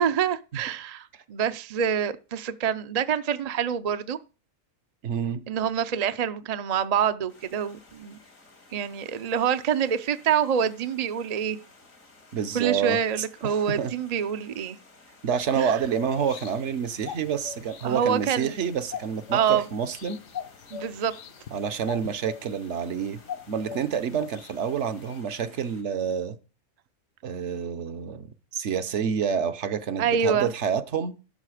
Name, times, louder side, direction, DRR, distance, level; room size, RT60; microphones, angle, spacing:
voice 1, 0.0-4.2 5.5-8.2 8.7-11.6 12.5-14.8 15.6-15.8 17.8-18.5 19.3-19.6 20.7-21.1 30.0-30.5, right 8 dB, 45° right, 0.5 m, -26 dB
voice 2, 5.0-5.4 12.3-13.9 15.2-20.2 21.5-23.2 23.5-26.4 27.2-31.1, right 7 dB, 65° right, 1.1 m, -28 dB
Stream, 7.3-25.8, left 3 dB, 90° left, 2.9 m, -55 dB
sound 1, 15.4-25.2, left 8 dB, 70° left, 1.1 m, -42 dB
12.5 x 6.5 x 4.9 m
omnidirectional pair, 1.4 m